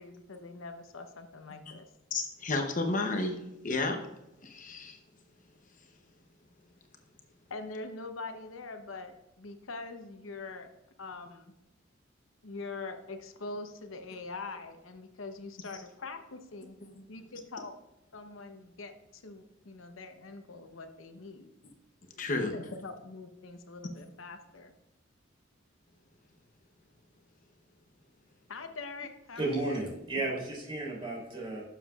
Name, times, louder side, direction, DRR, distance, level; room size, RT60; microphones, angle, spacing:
voice 1, 0.0-1.9 7.5-10.7 11.0-11.5 12.4-16.8 17.1-17.8 18.1-21.5 22.4-24.7 28.5-29.9, left 3 dB, 90° left, 7 dB, 0.9 m, -43 dB
voice 2, 2.1-3.4 3.6-4.0 4.4-5.0 16.8-16.9 22.2-22.5, left 3 dB, 40° left, 4 dB, 0.8 m, -31 dB
voice 3, 29.3-31.6, right 2 dB, 25° right, -3 dB, 3.1 m, -33 dB
11.5 x 7.1 x 2.4 m, 0.94 s
head